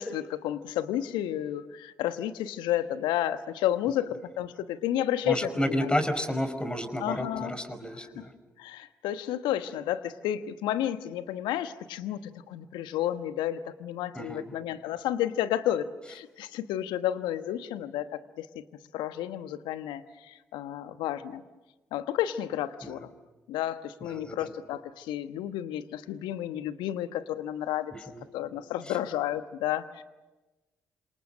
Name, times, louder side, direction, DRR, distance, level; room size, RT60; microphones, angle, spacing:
voice 1, 0.0-6.0 7.0-7.5 7.9-8.3 8.6-18.5 18.9-21.4 21.9-23.1 23.5-27.9 28.3-30.0, left 11 dB, 75° left, 11 dB, 1.2 m, -31 dB
voice 2, 5.2-8.3 14.1-14.5 22.8-22.9 24.0-24.5 27.9-28.2, equal, 10° left, 8 dB, 5.2 m, -31 dB
29.0 x 27.0 x 6.6 m, 1.1 s
hypercardioid pair, 40°, 8 cm